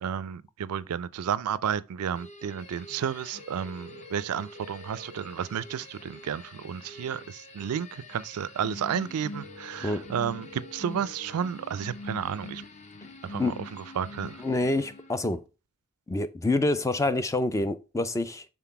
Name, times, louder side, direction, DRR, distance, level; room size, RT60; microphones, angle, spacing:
voice 1, 0.0-12.6 13.2-14.4, right 8 dB, 75° right, 0.4 m, -32 dB
sound 1, 2.1-15.3, left 2 dB, 30° left, 0.8 m, -45 dB
sound 2, 3.3-5.4 9.3-11.3, left 1 dB, 55° left, 1.5 m, -48 dB
voice 2, 14.4-15.5 16.1-18.4, left 2 dB, 15° left, 0.4 m, -27 dB
5.9 x 3.8 x 4.5 m
head